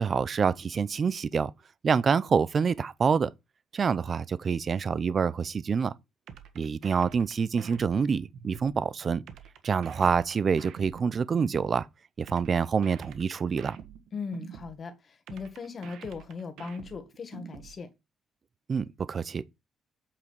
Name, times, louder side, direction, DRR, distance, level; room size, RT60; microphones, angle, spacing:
voice 1, 0.0-1.5 1.8-3.3 3.7-5.9 6.6-9.2 9.6-11.9 12.2-13.8 18.7-19.4, right 6 dB, 30° right, 0.5 m, -26 dB
sound 1, 6.3-8.8 9.3-11.8 12.3-14.8 15.3-17.8, right 8 dB, 70° right, 1.5 m, -46 dB
voice 2, 14.1-17.9, left 5 dB, 30° left, 1.5 m, -38 dB
8.4 x 5.0 x 5.2 m
cardioid pair, 170°, 0 cm